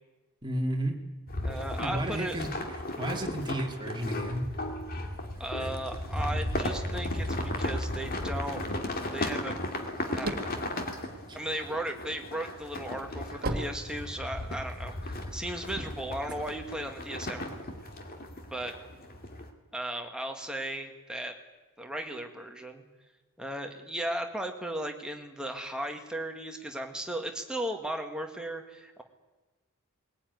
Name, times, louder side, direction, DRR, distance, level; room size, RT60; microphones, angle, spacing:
voice 1, 0.4-1.0 1.8-2.5 3.0-4.4, right 1 dB, 20° right, 1 dB, 2.6 m, -32 dB
sound 1, 1.3-19.5, left 1 dB, 45° left, 2.4 m, -35 dB
voice 2, 1.4-2.4 5.4-8.6 9.1-9.6 10.2-10.5 11.3-17.6 18.5-18.7 19.7-21.3 21.8-22.8 23.4-29.0, right 1 dB, 5° right, 3 dB, 1.9 m, -36 dB
sound 2, 9.9-11.9 12.4-14.6, right 1 dB, 45° right, 1.9 m, -35 dB
20.5 x 17.5 x 9.5 m, 1.2 s
head